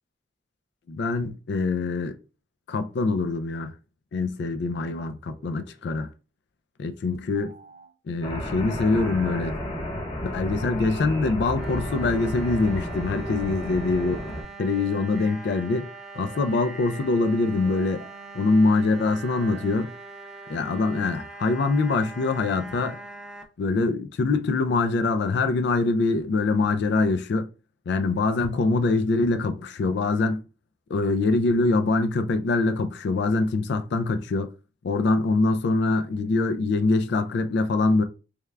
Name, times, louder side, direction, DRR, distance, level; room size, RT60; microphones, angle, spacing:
voice 1, 0.9-2.2 2.7-3.7 4.1-6.1 6.8-7.5 8.1-9.6 10.2-14.2 14.6-15.9 16.2-18.0 18.3-19.9 20.5-23.0 23.6-27.5 27.9-30.4 30.9-34.5 34.8-38.0, left 3 dB, 65° left, 0.3 m, -24 dB
sound 1, 5.1-5.8 7.1-7.9 8.8-9.6 10.6-11.4 12.0-12.7 13.3-14.1 14.8-15.4 16.1-17.1 17.6-18.2 18.9-19.7, right 3 dB, 55° right, 0.9 m, -47 dB
sound 2, 8.2-14.4, left 1 dB, 30° left, 0.7 m, -32 dB
sound 3, 11.6-23.4, right 3 dB, 5° right, 0.4 m, -42 dB
3.5 x 2.2 x 3.2 m
head